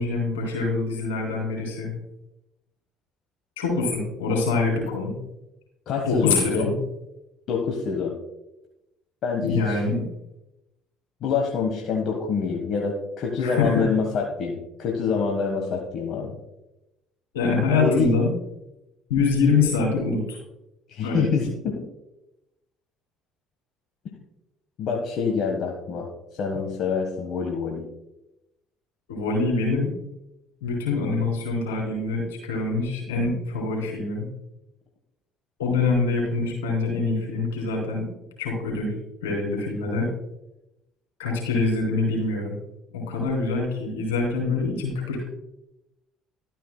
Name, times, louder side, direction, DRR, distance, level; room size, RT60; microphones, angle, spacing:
voice 1, 0.0-1.9 3.6-5.1 6.0-6.7 9.4-10.0 13.4-13.9 17.3-18.3 19.1-20.4 21.0-21.5 29.1-29.9 30.6-34.3 35.6-38.1 38.4-38.9 39.2-40.1 41.2-42.6 42.9-45.2, left 3 dB, 90° left, -2 dB, 3.1 m, -25 dB
voice 2, 5.9-6.7 7.5-8.2 9.2-9.8 11.2-16.3 17.7-18.1 20.9-21.8 24.8-26.1 26.4-27.8, left 5 dB, 60° left, 1 dB, 1.3 m, -26 dB
12.5 x 9.1 x 2.2 m, 0.89 s
hypercardioid pair, 65°, 0 cm